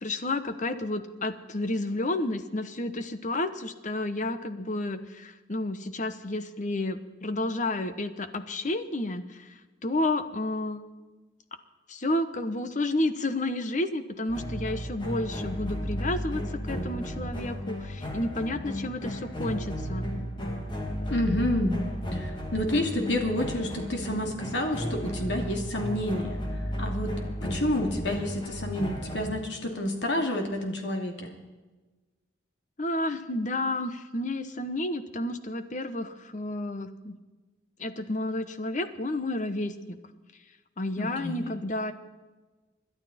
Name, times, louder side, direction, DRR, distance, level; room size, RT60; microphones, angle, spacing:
voice 1, 0.0-10.8 11.9-20.1 32.8-37.2 37.8-40.0 40.8-41.9, left 2 dB, 40° left, 10 dB, 1.0 m, -31 dB
sound 1, 14.3-29.3, equal, 25° left, 2.2 m, -34 dB
voice 2, 21.1-21.8 22.1-26.4 26.8-27.1 27.4-31.3 41.0-41.5, left 1 dB, 70° left, 3 dB, 2.7 m, -29 dB
27.0 x 11.5 x 4.3 m, 1.2 s
head